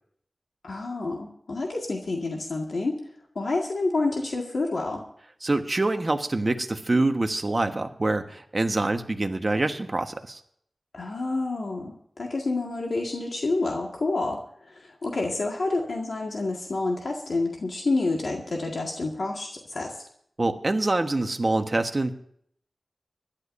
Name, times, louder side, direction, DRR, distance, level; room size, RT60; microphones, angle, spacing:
voice 1, 0.6-3.0 3.4-5.0 10.9-14.4 14.7-20.0, left 3 dB, 75° left, 0 dB, 1.9 m, -28 dB
voice 2, 5.4-10.4 20.4-22.1, right 2 dB, 40° right, 5 dB, 1.3 m, -25 dB
25.0 x 11.5 x 2.7 m, 0.65 s
wide cardioid pair, 90°, 0 cm